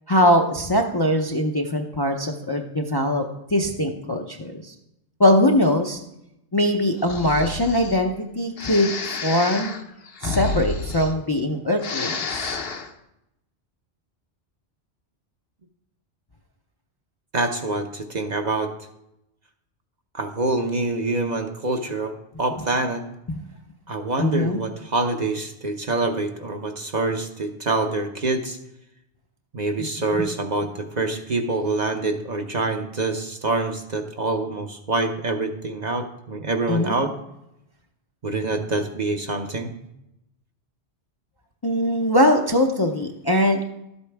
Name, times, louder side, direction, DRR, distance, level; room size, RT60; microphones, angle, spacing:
voice 1, 0.1-3.2 3.5-4.7 5.2-6.0 6.5-8.9 9.2-9.7 10.2-12.6 23.3-23.4 24.2-24.6 30.1-30.3 36.7-37.0 41.6-43.7, left 1 dB, 25° left, 2 dB, 0.5 m, -21 dB
Breathing, 7.0-8.0 8.6-11.5 11.7-12.9, left 4 dB, 60° left, 1.0 m, -30 dB
voice 2, 17.3-18.7 20.1-22.1 22.4-23.0 23.9-28.6 29.5-37.1 38.2-39.7, right 3 dB, 45° right, 4 dB, 0.8 m, -26 dB
12.0 x 8.3 x 3.4 m, 0.85 s
omnidirectional pair, 1.2 m